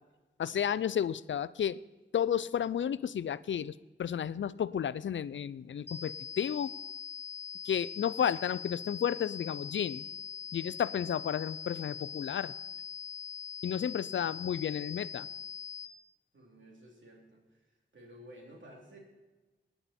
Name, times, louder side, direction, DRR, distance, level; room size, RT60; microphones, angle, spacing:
voice 1, 0.4-1.8 2.1-6.8 7.6-10.1 10.5-12.5 13.6-15.3, left 8 dB, 85° left, 18 dB, 0.4 m, -32 dB
sound 1, 5.9-15.9, left 7 dB, 35° left, 0.9 m, -42 dB
voice 2, 16.3-19.0, equal, 90° right, -1 dB, 2.9 m, -54 dB
18.0 x 10.0 x 4.3 m, 1.2 s
cardioid pair, 40°, 19 cm